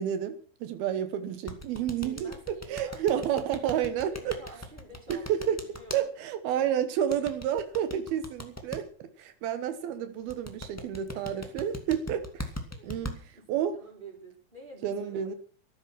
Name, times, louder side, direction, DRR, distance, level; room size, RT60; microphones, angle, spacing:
voice 1, 0.0-4.4 5.1-5.6 5.9-8.9 9.2-12.5 12.8-13.8 14.8-15.4, right 9 dB, 85° right, 10 dB, 3.1 m, -30 dB
sound 1, 1.5-6.0 7.1-8.8 10.3-13.1, equal, 10° left, 0.8 m, -38 dB
voice 2, 2.0-3.3 4.1-6.1 11.1-11.7 12.7-15.4, right 3 dB, 10° right, 0 dB, 5.2 m, -48 dB
14.0 x 12.0 x 6.1 m, 0.43 s
omnidirectional pair, 4.3 m